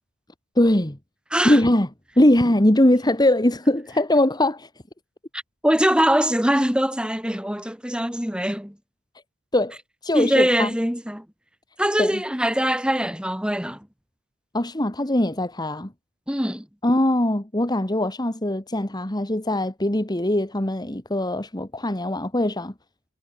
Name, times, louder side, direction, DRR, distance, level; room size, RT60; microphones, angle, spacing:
voice 1, 0.6-1.0 1.4-1.9 2.2-4.7 9.5-9.8 10.0-10.7 12.0-12.2 14.5-15.9 16.8-22.7, left 1 dB, 20° left, 1.8 m, -21 dB
voice 2, 5.3-8.8 10.1-11.3 11.8-13.9 16.3-16.7, equal, 5° right, 7.3 m, -22 dB
head